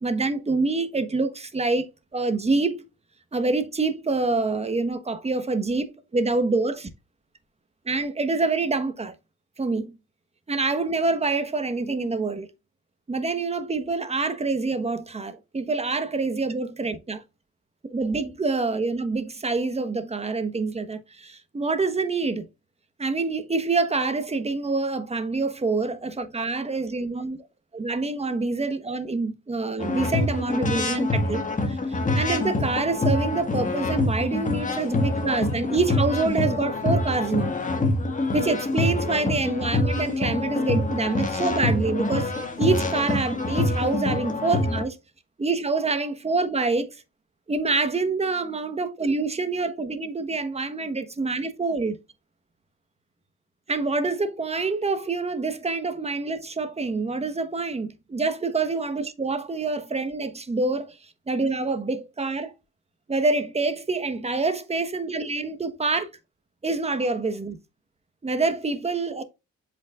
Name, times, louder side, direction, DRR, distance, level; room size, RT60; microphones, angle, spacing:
voice 1, 0.0-2.8 3.3-6.9 7.8-9.1 9.6-9.9 10.5-12.5 13.1-17.2 17.9-22.5 23.0-27.4 27.7-31.8 32.1-37.5 38.3-44.9 45.4-46.9 47.5-52.0 53.7-61.0 61.3-62.5 63.1-66.1 66.6-67.6 68.2-69.2, right 3 dB, 20° right, 1.2 m, -26 dB
sound 1, 29.8-44.8, left 2 dB, 25° left, 1.7 m, -26 dB
7.7 x 5.2 x 2.5 m
cardioid pair, 90°, 30 cm